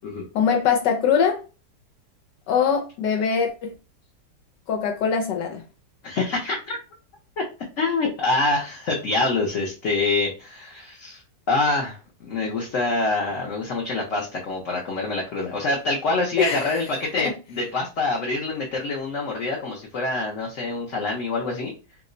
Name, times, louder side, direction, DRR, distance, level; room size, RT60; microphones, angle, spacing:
voice 1, 0.3-1.4 2.5-3.7 4.7-5.6 16.4-16.7 17.2-17.3, left 7 dB, 80° left, 1.2 m, -22 dB
voice 2, 6.0-6.8 7.4-7.5 7.8-11.2 11.5-21.7, left 3 dB, 55° left, 0.9 m, -26 dB
3.0 x 2.1 x 3.7 m
omnidirectional pair, 1.9 m